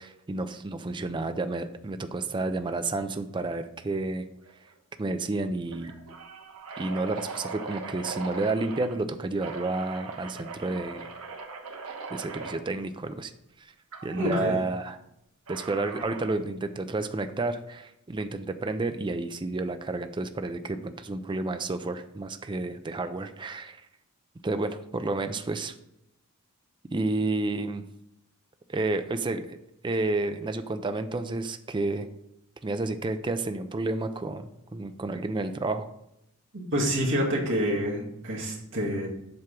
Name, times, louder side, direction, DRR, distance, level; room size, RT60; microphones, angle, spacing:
voice 1, 0.0-4.3 5.0-5.9 6.8-11.1 12.1-13.3 13.6-13.7 14.0-15.0 15.5-23.8 24.4-25.7 26.9-27.8 28.7-29.6 29.8-32.1 32.6-35.9, right 2 dB, 20° right, 9 dB, 0.4 m, -30 dB
sound 1, 4.4-4.7 5.0-5.1 5.7-8.9 9.4-12.6 13.9-14.3 15.5-16.4, right 4 dB, 80° right, 1.1 m, -40 dB
voice 2, 14.2-14.5 36.5-39.1, equal, 60° right, -3 dB, 2.0 m, -27 dB
7.6 x 3.5 x 6.1 m, 0.81 s
head